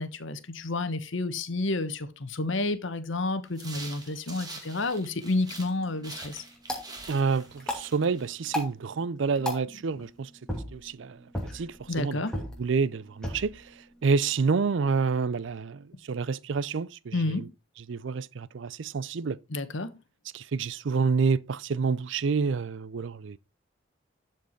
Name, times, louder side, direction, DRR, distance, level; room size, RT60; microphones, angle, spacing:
voice 1, 0.0-6.4 11.9-12.3 17.1-17.5 19.5-19.9, left 2 dB, 70° left, 1.1 m, -30 dB
sound 1, 3.5-5.7 6.0-8.6, right 3 dB, 20° right, 2.0 m, -45 dB
sound 2, 5.5-15.6, left 1 dB, 5° left, 2.4 m, -39 dB
voice 2, 7.1-10.3 10.7-11.2 11.5-12.2 12.6-13.7 14.0-17.4 17.9-19.4 20.3-23.4, right 5 dB, 65° right, 0.4 m, -28 dB
12.5 x 4.6 x 4.5 m
head